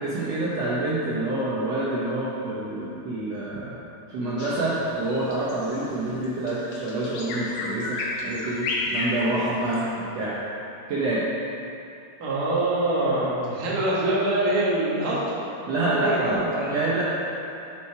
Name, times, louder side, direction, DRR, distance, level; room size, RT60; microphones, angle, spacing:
voice 1, 0.0-3.7 4.1-9.8 10.1-10.4 10.9-11.2 15.7-17.0, right 2 dB, 70° right, -7 dB, 1.6 m, -27 dB
Bird vocalization bird call bird song, 4.4-9.9, left 2 dB, 70° left, 1.6 m, -32 dB
voice 2, 12.2-15.4 16.0-16.7, right 1 dB, 50° right, -7 dB, 1.1 m, -24 dB
8.5 x 4.9 x 4.6 m, 2.7 s
omnidirectional pair, 3.9 m